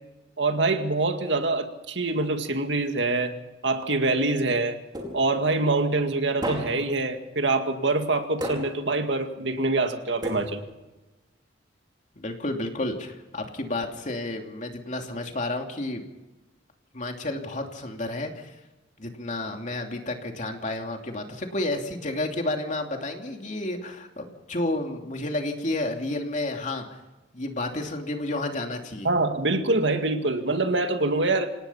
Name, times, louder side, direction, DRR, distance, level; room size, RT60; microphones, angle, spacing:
voice 1, 0.4-3.3 3.6-4.8 5.1-10.6 29.0-31.5, right 2 dB, 70° right, 6 dB, 2.1 m, -25 dB
sound 1, 4.9-5.5 6.4-7.0 8.4-9.0 10.2-10.9, equal, 25° right, 4.7 m, -33 dB
voice 2, 12.2-16.0 16.9-18.5 19.0-27.0 27.3-29.1, left 2 dB, 40° left, 3 dB, 2.8 m, -31 dB
27.0 x 18.5 x 5.7 m, 1.1 s
head